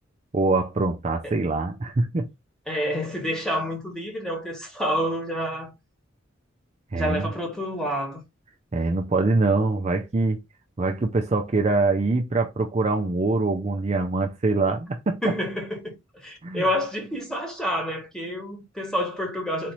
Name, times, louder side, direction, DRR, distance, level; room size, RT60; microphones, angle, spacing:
voice 1, 0.3-2.3 6.9-7.3 8.7-10.4 10.8-15.3 16.4-16.7, right 3 dB, 35° right, 0.5 m, -24 dB
voice 2, 2.7-5.7 6.9-8.2 15.2-19.7, equal, 5° left, 1.6 m, -28 dB
4.2 x 3.1 x 3.9 m
head